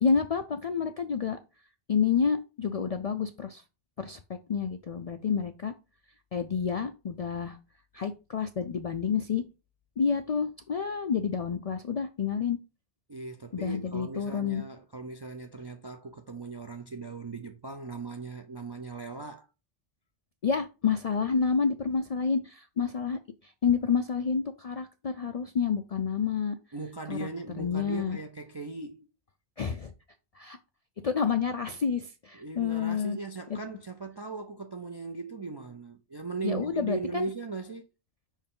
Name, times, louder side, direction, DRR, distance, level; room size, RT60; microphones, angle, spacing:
voice 1, 0.0-1.4 1.9-3.6 4.0-5.7 6.3-7.6 7.9-9.4 10.0-12.6 13.5-14.6 20.4-26.6 27.1-27.3 27.6-28.2 29.6-29.9 30.3-30.6 31.0-33.2 33.5-33.6 36.4-37.3, left 6 dB, 55° left, 0.4 m, -29 dB
voice 2, 13.1-19.5 26.7-29.1 32.3-37.8, right 4 dB, 40° right, 0.3 m, -38 dB
5.6 x 4.5 x 3.7 m
omnidirectional pair, 1.2 m